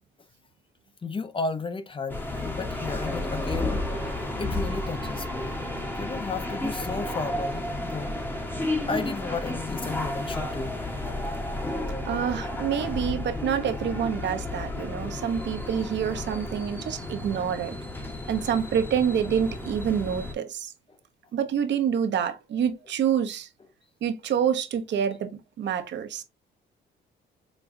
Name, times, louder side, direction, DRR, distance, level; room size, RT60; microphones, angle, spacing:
voice 1, 1.0-5.6 5.9-8.1 8.9-10.8 21.5-21.6, left 4 dB, 25° left, 0.6 m, -34 dB
sound 1, 2.1-20.3, left 1 dB, 10° left, 1.0 m, -32 dB
voice 2, 12.0-17.7 18.3-20.7 21.3-23.5 24.0-26.2, right 8 dB, 65° right, 0.7 m, -27 dB
5.0 x 2.3 x 2.5 m
cardioid pair, 90°, 20 cm